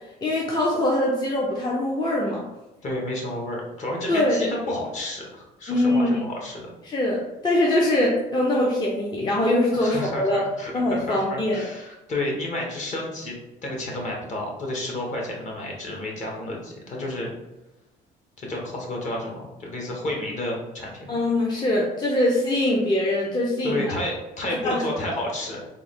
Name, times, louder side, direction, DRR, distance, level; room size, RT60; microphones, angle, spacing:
voice 1, 0.2-2.4 4.1-4.4 5.7-6.2 6.9-10.4 10.7-11.7 21.1-24.0 24.6-24.8, left 1 dB, 25° left, -3 dB, 0.5 m, -23 dB
voice 2, 2.8-6.6 9.7-13.3 13.6-17.3 18.4-21.2 23.6-25.7, left 1 dB, 45° left, -2 dB, 1.1 m, -31 dB
3.6 x 2.0 x 3.4 m, 1.0 s
cardioid pair, 110°, 17 cm